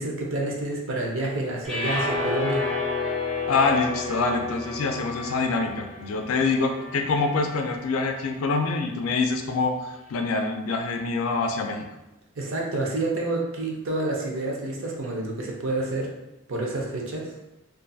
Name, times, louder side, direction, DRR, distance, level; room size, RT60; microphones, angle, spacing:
voice 1, 0.0-2.7 12.4-16.1 16.5-17.3, right 2 dB, 65° right, -1 dB, 0.6 m, -28 dB
sound 1, 1.6-7.9, left 3 dB, ahead, 0.5 m, -31 dB
voice 2, 3.5-11.8, left 4 dB, 80° left, 4 dB, 0.4 m, -25 dB
2.4 x 2.3 x 2.5 m, 0.97 s
head